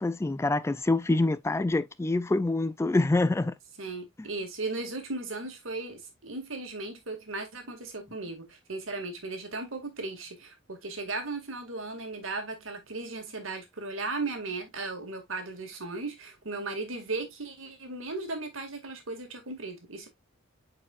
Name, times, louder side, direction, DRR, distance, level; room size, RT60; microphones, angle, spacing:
voice 1, 0.0-3.5, left 2 dB, 15° left, 0.3 m, -26 dB
voice 2, 3.8-20.1, right 3 dB, 85° right, 2.1 m, -36 dB
8.4 x 4.8 x 2.4 m
head